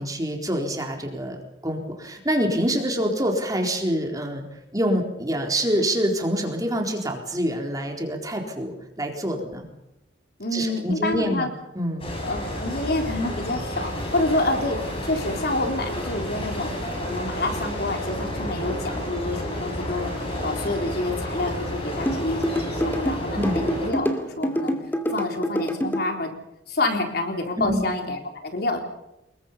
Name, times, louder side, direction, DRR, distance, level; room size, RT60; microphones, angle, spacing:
voice 1, 0.0-1.4 1.6-4.4 4.7-9.6 10.5-11.5 11.7-12.1 23.3-23.6 27.6-27.8, equal, 20° right, 2 dB, 4.0 m, -26 dB
voice 2, 10.4-11.5 12.2-16.7 17.0-24.7 25.1-26.3 26.7-28.8, left 2 dB, 60° left, 4 dB, 3.9 m, -28 dB
sound 1, 12.0-23.9, equal, 30° left, 8.0 m, -31 dB
sound 2, 22.1-26.0, equal, 10° left, 2.6 m, -25 dB
27.0 x 22.0 x 5.7 m, 0.87 s
head